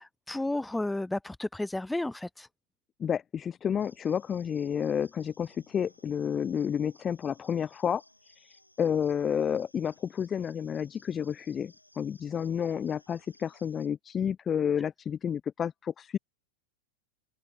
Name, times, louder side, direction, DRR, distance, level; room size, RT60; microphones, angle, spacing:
voice 1, 0.0-2.5, left 2 dB, 5° left, 1.1 m, -32 dB
voice 2, 3.0-16.2, left 8 dB, 25° left, 0.8 m, -30 dB
sound 1, 3.8-13.9, left 1 dB, 85° left, 6.2 m, -61 dB
figure-of-eight pair, 90°, 0 cm